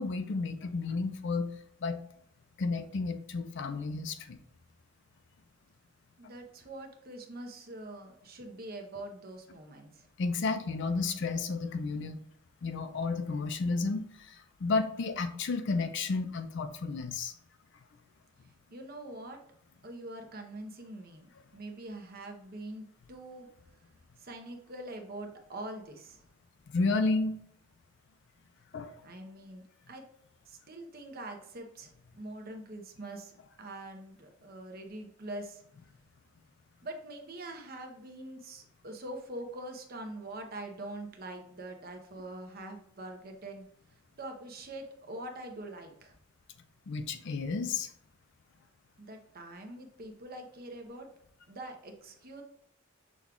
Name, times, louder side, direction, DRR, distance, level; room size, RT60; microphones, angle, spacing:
voice 1, 0.0-1.5 1.8-2.0 2.6-4.4 10.2-12.2 12.6-17.4 26.7-27.4 28.7-28.9 46.9-47.9, left 3 dB, 60° left, 9 dB, 0.5 m, -32 dB
voice 2, 6.2-10.1 18.7-19.4 19.8-23.5 24.2-26.2 29.0-30.0 30.5-33.3 33.6-35.6 36.8-43.6 44.2-46.1 49.0-51.1 51.5-52.4, right 1 dB, 50° right, 4 dB, 0.7 m, -44 dB
6.2 x 2.3 x 3.7 m, 0.69 s
head